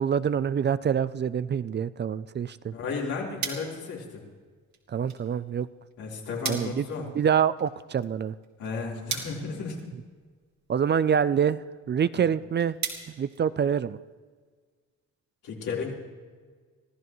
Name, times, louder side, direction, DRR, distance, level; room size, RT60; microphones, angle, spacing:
voice 1, 0.0-2.7 4.9-5.7 6.5-8.3 10.7-11.6 11.9-12.8 13.1-14.0, right 8 dB, 35° right, 15 dB, 0.4 m, -26 dB
voice 2, 2.7-4.2 6.0-7.1 8.6-9.8 12.1-12.3 15.4-16.0, left 4 dB, 80° left, -4 dB, 4.1 m, -34 dB
sound 1, 2.7-14.1, right 6 dB, 65° right, 2.7 m, -41 dB
25.5 x 15.0 x 3.1 m, 1.5 s
cardioid pair, 90°, 30 cm